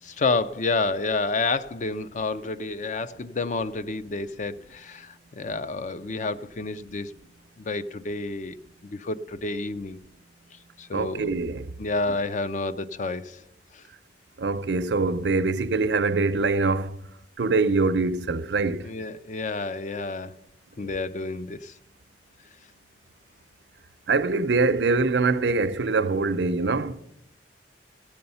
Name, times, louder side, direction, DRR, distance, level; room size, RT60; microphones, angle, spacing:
voice 1, 0.0-7.1 7.6-8.6 8.9-10.0 10.8-11.3 11.8-13.4 13.7-13.8 18.8-20.4 20.8-21.7, left 3 dB, 45° left, 0.5 m, -29 dB
voice 2, 10.9-11.7 14.4-17.0 17.4-18.9 20.8-20.9 24.1-27.0, right 3 dB, 80° right, 0.6 m, -24 dB
15.5 x 7.7 x 5.5 m
head